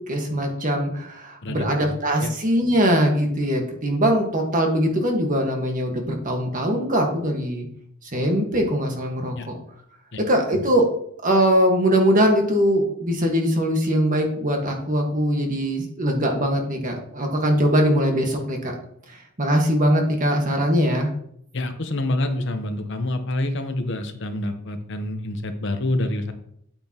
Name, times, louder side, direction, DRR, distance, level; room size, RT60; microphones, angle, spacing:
voice 1, 0.0-7.7 8.0-9.6 10.2-10.9 11.2-18.7 19.1-21.1, equal, 40° right, 2 dB, 1.6 m, -21 dB
voice 2, 21.5-26.3, left 1 dB, 60° left, 7 dB, 0.9 m, -27 dB
8.6 x 8.6 x 3.0 m, 0.70 s
head